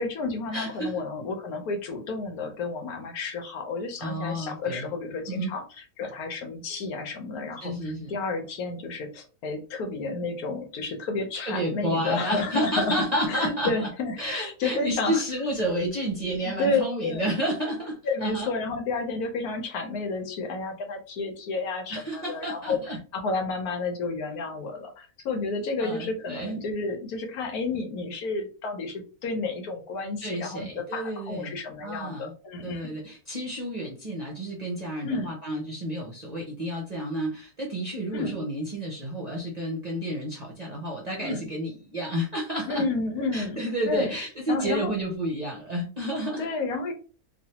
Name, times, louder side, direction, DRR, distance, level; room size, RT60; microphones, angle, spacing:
voice 1, 0.0-5.6 6.0-12.9 13.3-15.2 16.4-17.2 18.0-32.9 35.0-35.3 38.1-38.4 41.2-41.5 42.7-43.6 43.9-44.1 44.5-45.0 46.4-46.9, left 3 dB, 80° left, 4 dB, 1.2 m, -31 dB
voice 2, 0.5-0.9 4.0-4.9 5.3-5.5 7.6-8.1 11.4-13.9 14.2-18.5 21.9-23.0 25.8-26.6 30.2-32.3 32.6-42.8 43.3-46.5, equal, 40° right, -2 dB, 0.6 m, -31 dB
3.1 x 2.4 x 2.8 m, 0.37 s
omnidirectional pair, 1.6 m